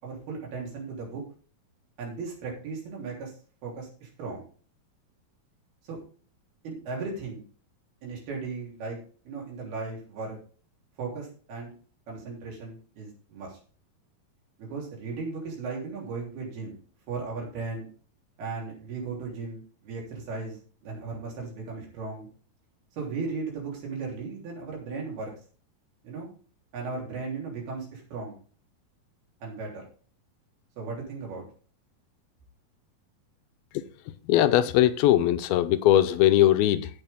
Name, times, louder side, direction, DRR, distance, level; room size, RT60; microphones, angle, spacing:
voice 1, 0.0-1.2 2.0-3.4 3.6-4.4 5.8-6.0 6.6-7.4 8.0-9.0 9.3-10.4 11.0-11.7 12.1-13.6 14.6-16.8 17.1-17.9 18.4-22.3 23.0-25.3 26.0-26.3 26.7-28.4 29.4-29.9 30.8-31.5, right 4 dB, 85° right, 5.3 m, -36 dB
voice 2, 34.3-36.9, left 13 dB, 80° left, 2.5 m, -20 dB
16.0 x 6.2 x 3.7 m
omnidirectional pair, 4.3 m